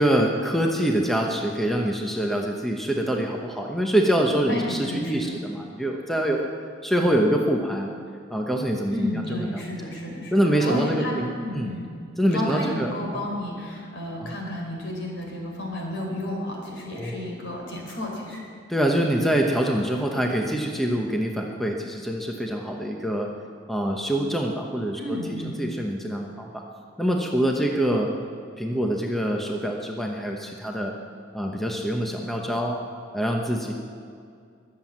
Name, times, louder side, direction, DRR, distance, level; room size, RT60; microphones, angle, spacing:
voice 1, 0.0-6.5 6.8-7.9 8.3-9.7 10.3-11.7 12.2-13.3 14.2-14.3 16.9-17.2 18.7-23.3 23.7-26.6 27.0-28.1 28.6-30.9 31.3-32.8 33.1-33.7, right 1 dB, ahead, 1 dB, 1.0 m, -25 dB
voice 2, 4.5-5.3 8.9-11.8 12.3-18.4 25.0-25.6, left 1 dB, 60° left, 0 dB, 4.1 m, -31 dB
22.0 x 7.8 x 7.4 m, 2.3 s
head